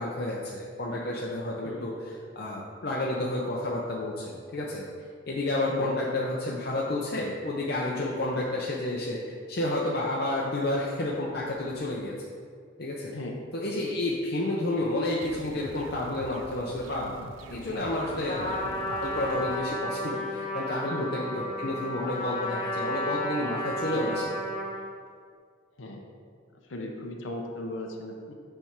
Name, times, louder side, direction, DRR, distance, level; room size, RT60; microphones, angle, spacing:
voice 1, 0.0-4.9 5.3-12.1 12.8-13.1 13.5-24.2, left 1 dB, 55° left, -4 dB, 0.6 m, -30 dB
sound 1, 15.2-19.6, right 2 dB, 85° right, 0.4 m, -44 dB
voice 2, 18.1-18.5 20.9-21.1 23.8-24.2 25.8-26.1 26.7-28.3, left 1 dB, 85° left, 2 dB, 0.8 m, -37 dB
Trumpet, 18.3-24.9, left 1 dB, 20° left, 1.2 m, -33 dB
7.1 x 3.4 x 5.9 m, 2.1 s
head